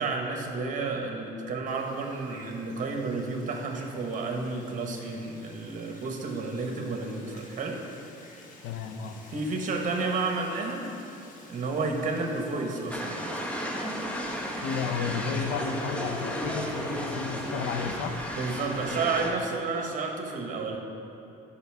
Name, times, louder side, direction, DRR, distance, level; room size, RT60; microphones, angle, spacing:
voice 1, 0.0-7.8 9.3-10.9 11.5-13.2 18.3-20.8, right 3 dB, 50° right, 2 dB, 1.2 m, -31 dB
Wind, 1.7-18.9, left 2 dB, 50° left, 1.2 m, -52 dB
voice 2, 8.6-9.2 14.6-18.2, left 6 dB, 80° left, 7 dB, 0.6 m, -32 dB
sound 1, 12.9-19.3, equal, 10° left, 1.0 m, -33 dB
12.0 x 5.5 x 3.5 m, 2.7 s
cardioid pair, 110°, 17 cm